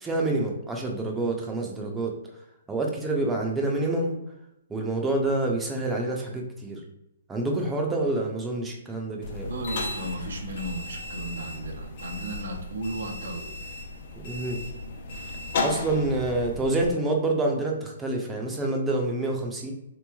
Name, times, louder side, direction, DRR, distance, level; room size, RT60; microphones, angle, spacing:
voice 1, 0.0-2.1 2.7-4.2 4.7-6.8 7.3-9.5 14.2-14.6 15.6-19.7, right 2 dB, 10° right, 0 dB, 0.5 m, -27 dB
sound 1, 9.2-16.9, left 3 dB, 50° left, 0.5 m, -35 dB
voice 2, 9.4-13.5, right 1 dB, 75° right, 2 dB, 0.7 m, -35 dB
3.3 x 3.0 x 2.3 m, 0.84 s
hypercardioid pair, 155°, 0 cm